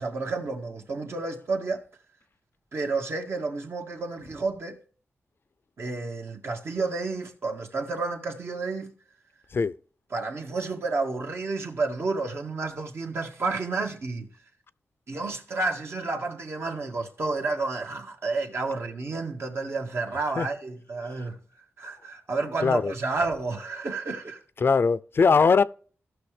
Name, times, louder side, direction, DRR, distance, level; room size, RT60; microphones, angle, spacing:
voice 1, 0.0-1.8 2.7-4.8 5.8-8.9 10.1-14.3 15.1-21.4 21.8-24.4, right 3 dB, 60° right, 1.8 m, -30 dB
voice 2, 22.6-22.9 24.6-25.6, left 5 dB, 50° left, 0.4 m, -20 dB
16.0 x 6.2 x 3.4 m
wide cardioid pair, 90°, 5 cm